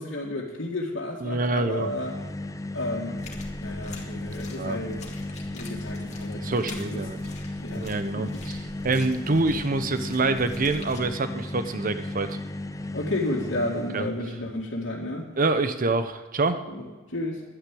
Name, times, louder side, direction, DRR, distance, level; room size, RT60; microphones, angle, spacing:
voice 1, 0.0-2.1 2.7-3.3 3.6-5.1 5.5-7.3 7.6-8.7 12.9-15.3 16.7-17.4, left 1 dB, 80° left, -7 dB, 2.2 m, -32 dB
voice 2, 1.2-1.9 4.6-4.8 6.4-7.2 7.7-8.6 8.8-12.4 13.9-14.1 15.4-16.6, right 3 dB, 45° right, 10 dB, 0.9 m, -26 dB
sound 1, 1.6-14.2, left 1 dB, 15° left, 0.5 m, -35 dB
sound 2, 3.2-11.0, left 2 dB, 40° left, 2.1 m, -45 dB
11.5 x 9.7 x 8.6 m, 1.3 s
head